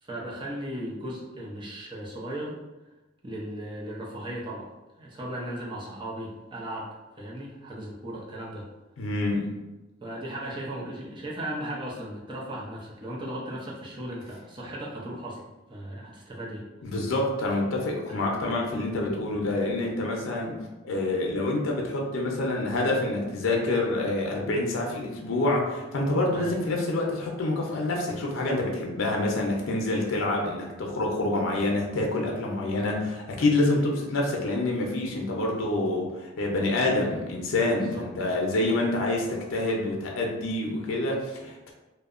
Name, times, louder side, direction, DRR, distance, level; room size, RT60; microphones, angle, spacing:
voice 1, 0.0-2.6 3.2-4.7 5.0-6.9 7.2-8.7 10.0-16.7 18.1-18.2 26.3-26.6 37.8-38.4, right 1 dB, 25° right, -4 dB, 0.5 m, -37 dB
voice 2, 9.0-9.5 16.8-20.6 20.8-41.7, left 2 dB, 90° left, 0 dB, 0.5 m, -27 dB
2.7 x 2.1 x 2.4 m, 1.1 s
head